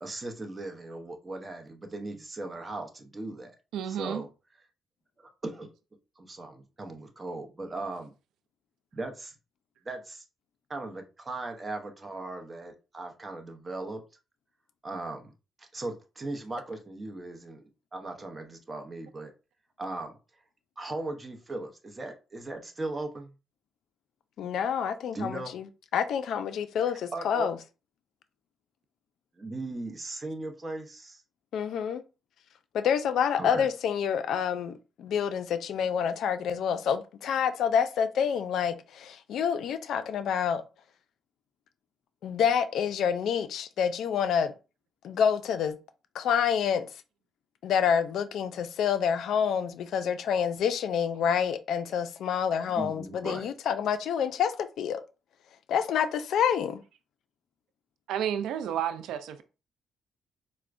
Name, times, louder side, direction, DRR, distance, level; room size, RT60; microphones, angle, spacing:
voice 1, 0.0-3.6 3.9-4.3 5.2-5.7 6.2-8.1 8.9-9.3 9.8-10.2 10.7-14.0 14.8-15.3 15.6-19.3 19.8-20.2 20.8-23.3 25.1-25.6 27.1-27.5 29.4-31.2 33.4-33.7 52.8-53.5, right 2 dB, 25° right, 0.7 m, -38 dB
voice 2, 3.7-4.2 58.1-59.4, right 9 dB, 80° right, 0.3 m, -31 dB
voice 3, 24.4-25.6 25.9-27.6 31.5-32.0 32.7-40.6 42.2-44.5 45.0-45.8 46.1-46.9 47.6-55.0 55.7-56.8, left 8 dB, 75° left, 0.3 m, -28 dB
4.4 x 2.1 x 2.5 m
cardioid pair, 90°, 0 cm